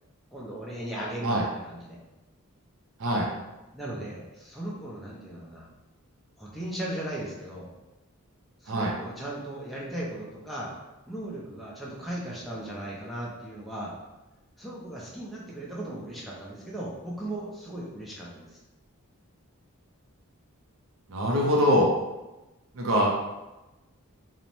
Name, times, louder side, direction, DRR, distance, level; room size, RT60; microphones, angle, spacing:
voice 1, 0.3-2.0 3.7-5.7 6.4-7.7 8.6-10.7 11.1-13.9 14.6-18.6, right 1 dB, ahead, -6 dB, 0.4 m, -37 dB
voice 2, 21.1-21.9 22.7-23.2, equal, 65° right, -2 dB, 0.4 m, -23 dB
2.6 x 2.0 x 2.9 m, 1.0 s
head